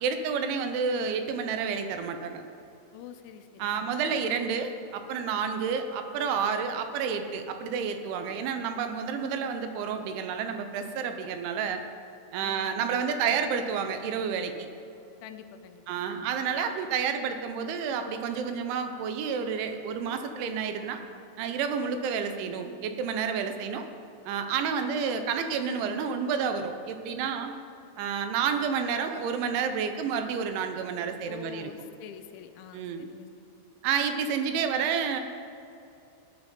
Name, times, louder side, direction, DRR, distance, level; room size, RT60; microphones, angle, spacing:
voice 1, 0.0-2.4 3.6-11.8 12.3-14.5 15.9-21.0 21.4-23.9 24.3-27.6 28.0-31.7 32.7-33.1 33.8-35.2, right 6 dB, 80° right, 7 dB, 3.2 m, -30 dB
voice 2, 2.9-4.0 12.4-13.3 15.2-16.3 31.3-33.5, left 8 dB, 85° left, 8 dB, 3.1 m, -47 dB
17.5 x 10.5 x 4.4 m, 2.8 s
omnidirectional pair, 5.5 m